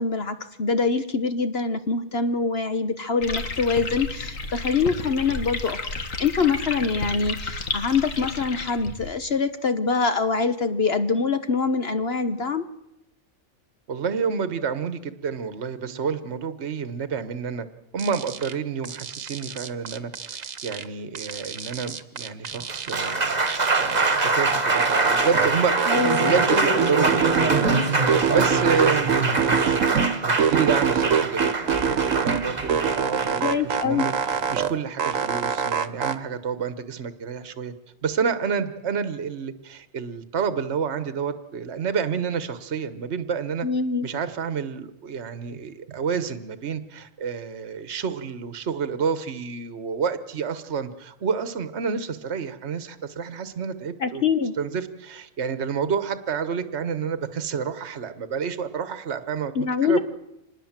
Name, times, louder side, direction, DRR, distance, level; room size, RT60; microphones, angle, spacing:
voice 1, 0.0-12.6 25.9-26.3 33.4-34.1 43.6-44.1 54.0-54.6 59.6-60.0, left 4 dB, 50° left, 10 dB, 1.2 m, -24 dB
sound 1, 3.2-9.1, left 4 dB, 75° left, 2.1 m, -32 dB
voice 2, 13.9-17.7 17.9-29.3 30.2-31.5 31.8-37.7 38.0-43.7 44.0-54.2 54.6-60.0, right 6 dB, 55° right, 11 dB, 1.4 m, -29 dB
sound 2, 18.0-18.5 18.8-20.8 21.1-23.2 23.5-25.5 25.8-27.8 28.1-30.1 30.4-32.4 32.7-34.7 35.0-36.1, right 7 dB, 75° right, 1.5 m, -25 dB
Applause, 22.5-34.8, right 3 dB, 30° right, 1.7 m, -24 dB
26.0 x 20.0 x 7.4 m, 0.89 s
omnidirectional pair, 1.4 m